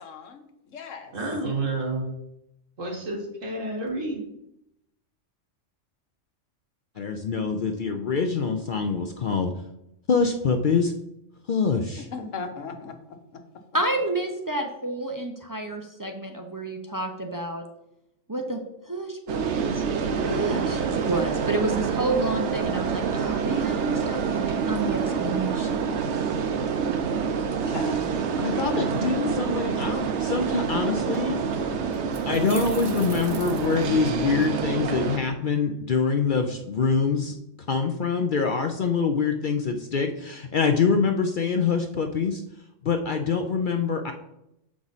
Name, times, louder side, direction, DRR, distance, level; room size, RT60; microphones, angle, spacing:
voice 1, 0.0-1.1 12.1-12.9 26.6-26.7 27.7-28.1, left 5 dB, 80° left, 6 dB, 1.3 m, -37 dB
voice 2, 1.1-2.1 2.8-4.2, right 2 dB, 80° right, 0 dB, 2.0 m, -29 dB
voice 3, 7.0-9.5 10.1-10.9 11.5-12.1 28.4-31.4 32.3-37.3 37.7-42.4 42.8-44.1, left 5 dB, 55° left, 5 dB, 0.6 m, -25 dB
voice 4, 13.7-17.6 18.3-19.8 20.2-25.7, right 2 dB, 25° right, 3 dB, 0.4 m, -30 dB
sound 1, 19.3-35.2, right 6 dB, 65° right, 1.0 m, -27 dB
sound 2, 31.3-31.4 31.9-34.5, right 4 dB, 45° right, 0.8 m, -42 dB
7.2 x 4.8 x 4.0 m, 0.83 s
omnidirectional pair, 1.3 m